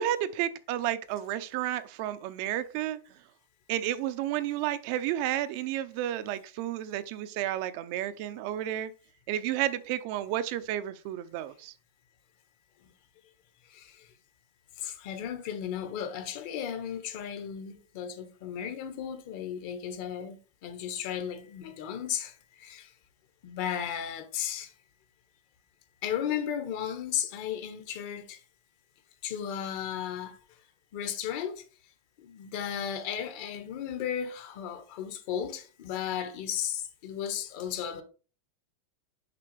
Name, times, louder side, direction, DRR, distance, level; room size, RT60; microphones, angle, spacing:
voice 1, 0.0-3.0 3.7-8.9 9.3-11.7, right 12 dB, 50° right, 0.5 m, -31 dB
voice 2, 13.7-14.1 14.8-22.9 23.4-24.7 26.0-28.4 29.2-30.4 30.9-31.6 32.2-38.0, left 9 dB, 55° left, 1.2 m, -35 dB
6.7 x 5.0 x 3.3 m
supercardioid pair, 145°, 0 cm